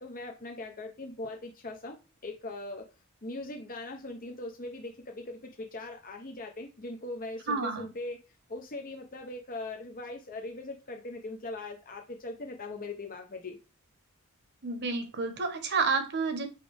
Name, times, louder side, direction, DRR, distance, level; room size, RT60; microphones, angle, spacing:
voice 1, 0.0-2.9 3.2-8.2 8.5-13.6, left 2 dB, 40° left, 2 dB, 0.8 m, -40 dB
voice 2, 7.5-7.9 14.6-16.5, right 4 dB, 50° right, 7 dB, 1.1 m, -30 dB
5.8 x 4.9 x 3.5 m, 0.30 s
head